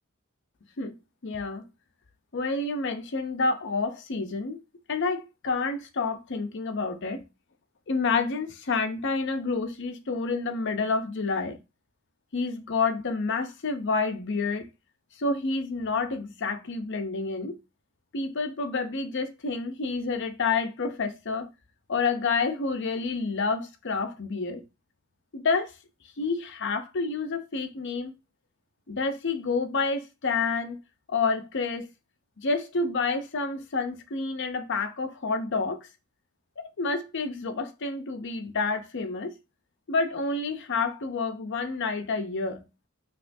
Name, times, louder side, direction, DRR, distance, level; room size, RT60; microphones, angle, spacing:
voice 1, 1.2-1.6 2.3-4.6 4.9-7.3 7.9-11.6 12.3-14.7 15.2-17.6 18.1-21.5 21.9-24.6 25.3-25.7 26.2-28.1 28.9-30.8 31.1-31.9 32.4-35.9 36.6-39.4 39.9-42.7, left 4 dB, 55° left, 0.6 m, -29 dB
5.5 x 3.0 x 2.6 m
head